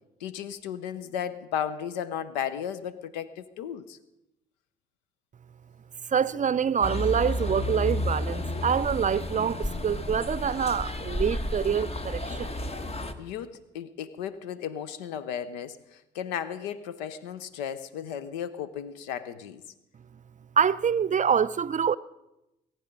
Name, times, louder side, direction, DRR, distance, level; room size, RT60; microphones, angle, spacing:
voice 1, 0.2-4.0 13.2-19.6, left 9 dB, 90° left, 0.6 m, -35 dB
voice 2, 6.1-12.6 20.6-22.0, right 7 dB, 35° right, 0.5 m, -26 dB
sound 1, 6.8-13.1, left 1 dB, 30° left, 1.3 m, -31 dB
21.5 x 9.0 x 5.2 m
hypercardioid pair, 45°, 21 cm